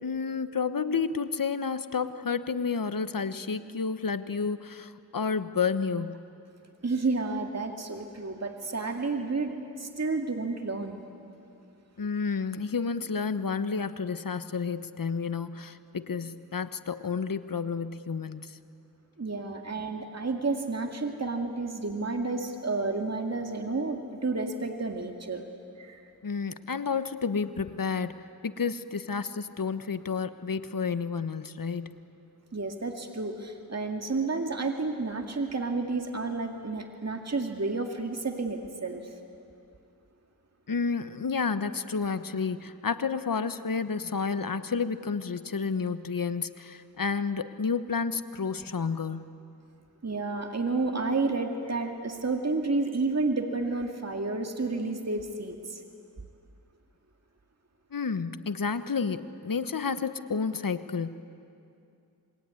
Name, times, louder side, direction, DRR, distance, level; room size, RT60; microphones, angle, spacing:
voice 1, 0.0-6.2 12.0-18.6 26.2-28.2 28.4-32.0 40.7-49.2 57.9-61.1, left 5 dB, 60° left, 12 dB, 1.2 m, -30 dB
voice 2, 6.8-11.0 19.2-25.4 25.8-26.0 32.5-39.1 50.0-55.8, right 3 dB, 45° right, 3 dB, 2.2 m, -31 dB
27.0 x 22.0 x 9.7 m, 2.6 s
cardioid pair, 50°, 38 cm